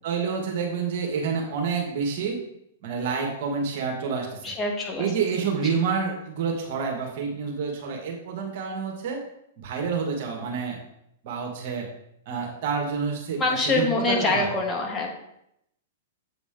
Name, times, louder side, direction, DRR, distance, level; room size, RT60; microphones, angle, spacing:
voice 1, 0.0-2.4 2.8-4.5 5.0-9.2 9.6-10.8 11.2-11.9 12.3-14.5, right 5 dB, 55° right, 0 dB, 1.8 m, -28 dB
voice 2, 4.4-5.1 5.7-5.8 13.4-15.2, left 3 dB, 20° left, 0 dB, 1.5 m, -25 dB
7.8 x 4.0 x 3.8 m, 0.78 s
hypercardioid pair, 110°, 0 cm